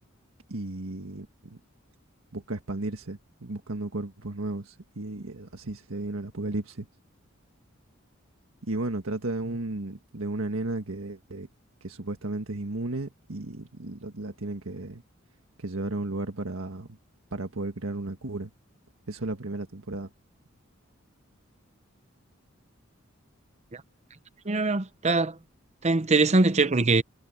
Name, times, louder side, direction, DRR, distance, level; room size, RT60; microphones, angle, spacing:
voice 1, 0.5-1.6 2.3-6.9 8.6-11.5 11.8-15.0 15.6-16.9 17.3-18.5 19.1-20.1, right 2 dB, 90° right, 1.6 m, -34 dB
voice 2, 24.5-25.4 25.8-27.0, right 3 dB, 35° right, 0.8 m, -22 dB
head